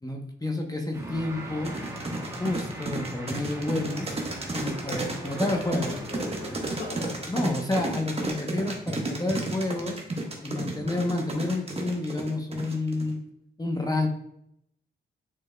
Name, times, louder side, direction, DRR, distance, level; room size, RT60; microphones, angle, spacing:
voice 1, 0.0-1.7 2.4-4.1 4.5-5.9 7.3-10.0 10.4-13.2 13.6-14.1, left 2 dB, 20° left, 2 dB, 0.9 m, -29 dB
sound 1, 0.9-7.2, right 1 dB, 15° right, 1.4 m, -40 dB
sound 2, 1.6-13.1, right 2 dB, 30° right, 1.1 m, -32 dB
voice 2, 4.6-7.2 10.5-10.7, left 1 dB, 55° left, 1 dB, 1.6 m, -40 dB
6.6 x 3.4 x 2.3 m, 0.75 s
cardioid pair, 55°, 21 cm